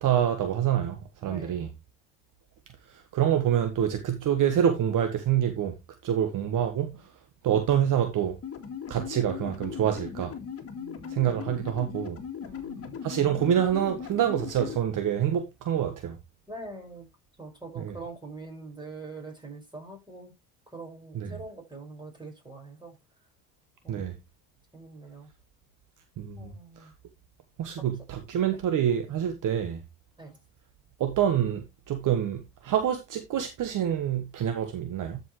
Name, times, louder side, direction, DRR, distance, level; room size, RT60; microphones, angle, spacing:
voice 1, 0.0-1.7 2.9-5.7 6.0-6.9 7.4-8.4 8.9-10.3 11.1-12.2 13.0-16.2 17.8-18.0 21.1-21.4 23.9-24.1 26.2-26.5 26.8-26.9 27.6-29.8 31.0-35.2, right 9 dB, 50° right, 1.4 m, -26 dB
voice 2, 1.2-1.7 10.7-11.2 12.4-13.0 16.5-17.1 17.4-20.3 20.7-23.0 23.8-24.0 24.7-25.3 26.4-26.9 30.2-30.4, right 3 dB, 10° right, 5.5 m, -43 dB
sound 1, 8.4-14.8, left 7 dB, 35° left, 2.1 m, -38 dB
12.5 x 5.5 x 3.1 m
supercardioid pair, 80°, 41 cm